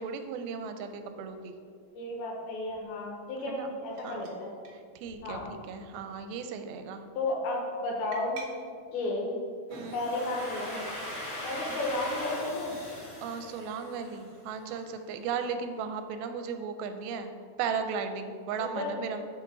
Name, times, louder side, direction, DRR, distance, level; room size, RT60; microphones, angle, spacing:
voice 1, 0.0-1.5 3.5-3.7 4.0-4.2 5.0-7.0 9.7-10.0 11.7-11.8 13.2-17.3 17.6-19.3, right 6 dB, 90° right, 8 dB, 2.4 m, -36 dB
voice 2, 1.9-4.5 5.2-5.4 7.2-8.4 8.9-9.4 9.9-10.8 11.4-12.7 15.4-15.5 18.6-19.0, left 2 dB, 85° left, -1 dB, 3.1 m, -33 dB
sound 1, 2.7-2.9 4.0-4.4 4.6-4.8 5.0-5.9 6.3-6.7 8.1-8.5, right 4 dB, 70° right, 2.2 m, -48 dB
Domestic sounds home sounds, 9.7-14.5, left 1 dB, 65° left, 0.7 m, -40 dB
7.6 x 5.0 x 3.8 m, 2.2 s
omnidirectional pair, 4.2 m